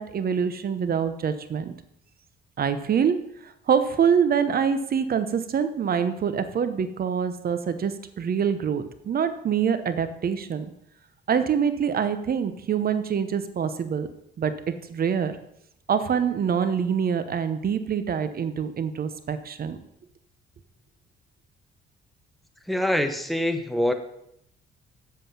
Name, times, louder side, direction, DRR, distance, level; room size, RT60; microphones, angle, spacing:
voice 1, 0.0-1.7 2.6-10.7 11.3-14.1 14.4-15.4 15.9-19.8, right 7 dB, 50° right, 11 dB, 0.9 m, -25 dB
voice 2, 22.7-23.9, left 1 dB, ahead, 8 dB, 1.0 m, -24 dB
7.6 x 7.5 x 5.7 m, 0.75 s
cardioid pair, 90°, 20 cm